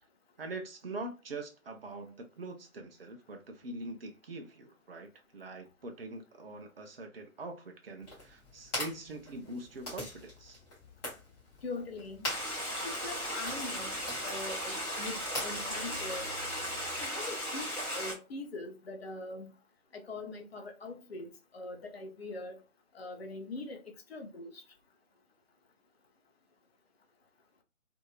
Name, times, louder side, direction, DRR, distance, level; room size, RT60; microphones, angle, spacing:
voice 1, 0.4-10.6, right 2 dB, 45° right, 0.6 m, -43 dB
sound 1, 8.0-17.0, left 1 dB, 20° left, 1.1 m, -44 dB
voice 2, 11.6-12.3 12.8-14.0 14.2-16.3 17.0-19.5 19.9-22.6 22.9-23.8 24.1-24.6, left 2 dB, 45° left, 0.7 m, -42 dB
Stream, 12.2-18.1, equal, ahead, 1.0 m, -36 dB
2.7 x 2.7 x 2.2 m
figure-of-eight pair, 145°, 43 cm